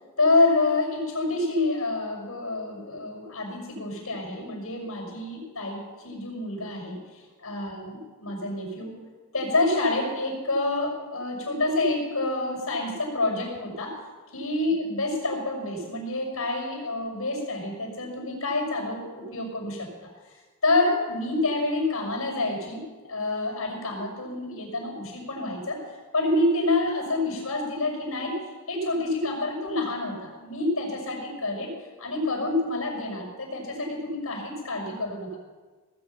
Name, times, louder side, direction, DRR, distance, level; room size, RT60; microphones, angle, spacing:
voice 1, 0.2-7.0 7.4-8.9 9.3-13.9 14.3-20.1 20.6-25.8 26.1-28.4 28.7-31.7 32.0-35.4, left 2 dB, 90° left, 0 dB, 6.0 m, -27 dB
19.0 x 8.8 x 5.9 m, 1.3 s
head